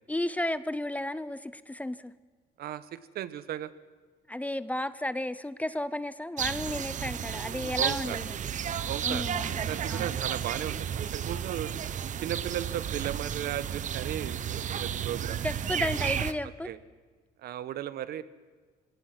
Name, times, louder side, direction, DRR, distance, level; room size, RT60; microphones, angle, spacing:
voice 1, 0.1-2.1 4.3-8.4 9.0-10.1 15.4-16.7, left 1 dB, 10° left, 15 dB, 0.7 m, -33 dB
voice 2, 2.6-3.7 7.8-8.2 8.8-9.2 9.5-11.7 12.2-15.4 16.6-16.8 17.4-18.2, right 11 dB, 65° right, 15 dB, 1.2 m, -36 dB
sound 1, 6.4-16.3, right 9 dB, 45° right, 1.0 m, -32 dB
26.5 x 17.5 x 6.1 m, 1.4 s
cardioid pair, 110°, 17 cm